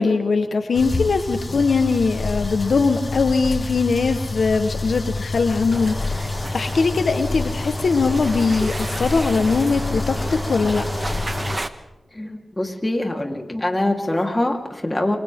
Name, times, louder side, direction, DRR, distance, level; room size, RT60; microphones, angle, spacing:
voice 1, 0.0-10.8, left 4 dB, 80° left, 7 dB, 1.4 m, -21 dB
sound 1, 0.7-11.6, left 3 dB, 40° left, 1.6 m, -28 dB
sound 2, 5.7-11.7, right 2 dB, 35° right, 1.5 m, -32 dB
voice 2, 12.1-15.2, left 1 dB, 20° left, 2 dB, 3.8 m, -24 dB
29.0 x 25.0 x 3.8 m, 0.98 s
cardioid pair, 55°, 0 cm